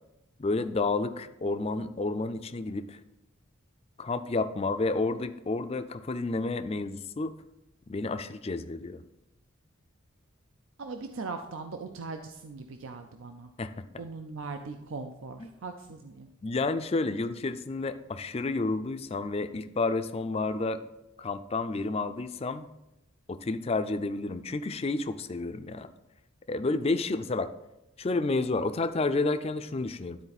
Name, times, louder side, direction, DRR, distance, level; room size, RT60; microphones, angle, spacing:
voice 1, 0.4-3.0 4.0-7.3 7.9-9.0 13.6-13.8 15.4-15.5 16.4-20.8 21.2-22.7 23.3-25.9 26.5-27.5 28.0-30.2, left 3 dB, 30° left, 10 dB, 0.4 m, -30 dB
voice 2, 10.8-13.5 14.0-16.3, right 4 dB, 70° right, 6 dB, 0.5 m, -40 dB
12.0 x 4.3 x 4.1 m, 0.91 s
head